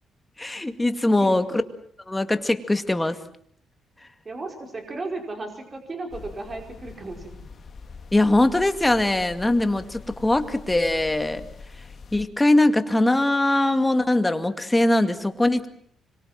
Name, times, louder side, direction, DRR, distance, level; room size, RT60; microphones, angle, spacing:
voice 1, 0.4-1.6 2.1-3.2 8.1-11.5 12.1-15.7, left 1 dB, 10° left, 8 dB, 2.2 m, -21 dB
voice 2, 4.2-7.5, right 2 dB, 30° right, 3 dB, 5.2 m, -35 dB
sound 1, 6.1-12.3, left 4 dB, 45° left, 2.1 m, -43 dB
25.5 x 23.0 x 7.6 m, 0.64 s
cardioid pair, 90°, 0 cm